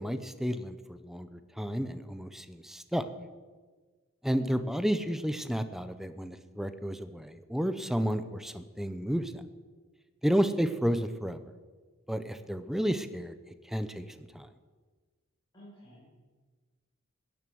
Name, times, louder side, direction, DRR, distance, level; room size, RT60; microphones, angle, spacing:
voice 1, 0.0-3.0 4.2-9.4 10.2-11.4 12.1-13.3 13.7-14.0 14.3-14.5, equal, ahead, 11 dB, 0.8 m, -31 dB
voice 2, 4.3-4.7 15.5-16.1, equal, 20° left, -8 dB, 6.3 m, -53 dB
16.5 x 11.0 x 7.8 m, 1.4 s
head